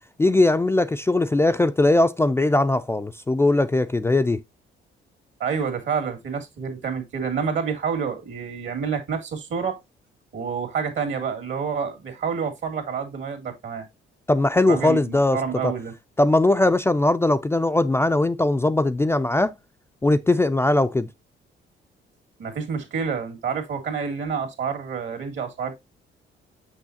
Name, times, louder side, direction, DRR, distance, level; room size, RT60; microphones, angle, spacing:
voice 1, 0.2-4.4 14.3-15.7 16.2-19.6 20.0-21.1, left 2 dB, 10° left, 0.3 m, -20 dB
voice 2, 5.4-9.8 10.3-13.9 14.7-15.9 22.4-25.8, right 6 dB, 70° right, 2.1 m, -28 dB
6.2 x 6.2 x 2.7 m
cardioid pair, 90°, 20 cm